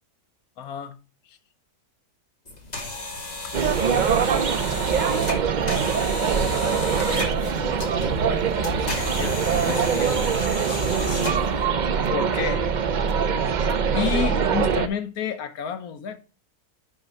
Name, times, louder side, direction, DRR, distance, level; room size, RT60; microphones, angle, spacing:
voice 1, 0.6-1.0 1.3-1.4 6.3-11.2 12.1-12.6 13.9-16.2, left 8 dB, 70° left, 1.3 m, -32 dB
sound 1, 2.5-11.6, left 2 dB, 25° left, 1.7 m, -33 dB
sound 2, 3.5-14.9, right 6 dB, 85° right, 0.4 m, -23 dB
6.1 x 5.3 x 5.6 m
omnidirectional pair, 1.6 m